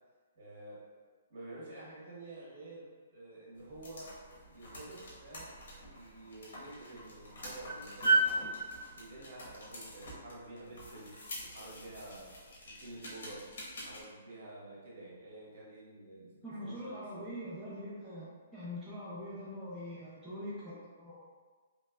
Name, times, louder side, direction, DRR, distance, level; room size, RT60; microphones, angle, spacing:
voice 1, 0.3-0.8 1.3-8.5 8.9-11.1 11.4-12.3 12.6-13.4 13.7-17.5, right 2 dB, 55° right, -7 dB, 1.4 m, -50 dB
sound 1, 3.6-14.0, right 2 dB, 65° left, 1.1 m, -38 dB
voice 2, 16.4-21.2, equal, ahead, -12 dB, 0.5 m, -43 dB
3.2 x 3.1 x 2.3 m, 1.4 s
hypercardioid pair, 170°, 0 cm